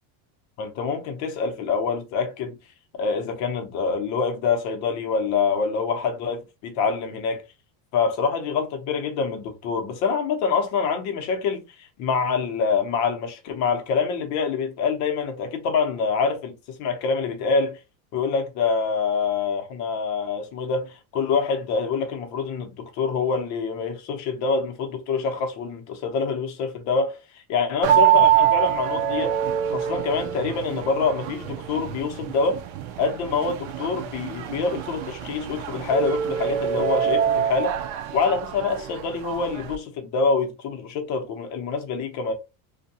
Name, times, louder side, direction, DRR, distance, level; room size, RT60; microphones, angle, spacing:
voice 1, 0.6-2.6 3.0-7.4 7.9-17.8 18.1-29.3 29.7-32.6 33.0-37.7 38.1-42.3, left 5 dB, 40° left, 0.6 m, -26 dB
sound 1, 27.8-39.7, right 10 dB, 75° right, 0.6 m, -25 dB
2.6 x 2.2 x 2.7 m
cardioid pair, 170°, 44 cm